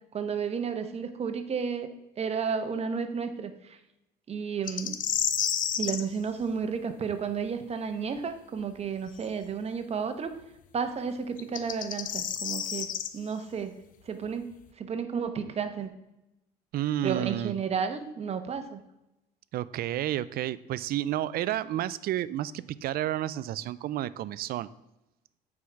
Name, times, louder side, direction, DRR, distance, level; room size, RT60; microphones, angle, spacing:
voice 1, 0.1-1.9 2.2-3.8 4.3-5.0 5.8-10.3 10.7-13.7 14.0-14.5 14.8-15.9 17.0-18.8, right 6 dB, 40° right, 8 dB, 1.0 m, -32 dB
sound 1, 4.7-6.0 9.2-9.3 11.4-13.1, left 9 dB, 50° left, 0.7 m, -30 dB
voice 2, 16.7-17.5 19.5-24.7, right 13 dB, 65° right, 18 dB, 0.4 m, -31 dB
8.4 x 4.8 x 5.8 m, 0.90 s
cardioid pair, 110°, 17 cm